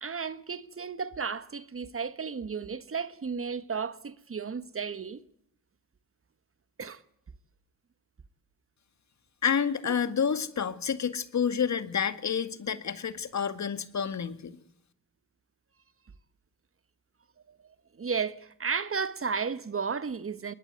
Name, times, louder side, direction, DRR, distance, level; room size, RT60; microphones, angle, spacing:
voice 1, 0.0-5.2 6.8-7.0 17.5-20.5, right 5 dB, 40° right, 1.5 m, -34 dB
voice 2, 9.4-14.5, left 7 dB, 50° left, 2.1 m, -29 dB
21.0 x 20.0 x 9.5 m
supercardioid pair, 65°, 36 cm